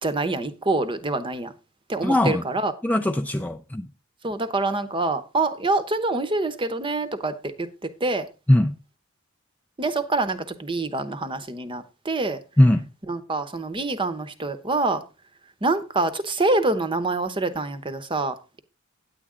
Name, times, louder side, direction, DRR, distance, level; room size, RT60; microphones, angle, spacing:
voice 1, 0.0-1.5 1.9-2.7 4.2-8.3 9.8-12.4 13.1-15.0 15.6-18.6, right 2 dB, 20° right, 0.9 m, -26 dB
voice 2, 2.0-2.4 2.8-3.9 8.5-8.7 12.6-12.9, left 1 dB, 5° left, 0.4 m, -20 dB
9.7 x 8.5 x 3.7 m
head